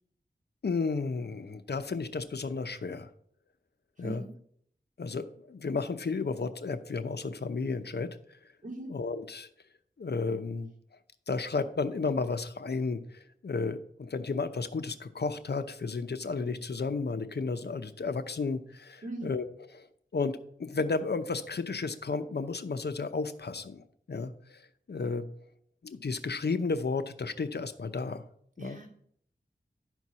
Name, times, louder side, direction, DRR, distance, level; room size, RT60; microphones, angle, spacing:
voice 1, 0.6-3.1 4.0-4.2 5.0-8.2 8.9-9.5 10.0-10.7 11.3-19.5 20.1-24.6 24.9-25.3 25.8-28.2 28.6-28.8, left 4 dB, 65° left, 9 dB, 0.8 m, -33 dB
voice 2, 4.0-4.3 8.6-9.0 19.0-19.4 28.6-28.9, right 2 dB, 45° right, -2 dB, 2.9 m, -40 dB
11.5 x 4.6 x 5.6 m, 0.66 s
wide cardioid pair, 55°, 18 cm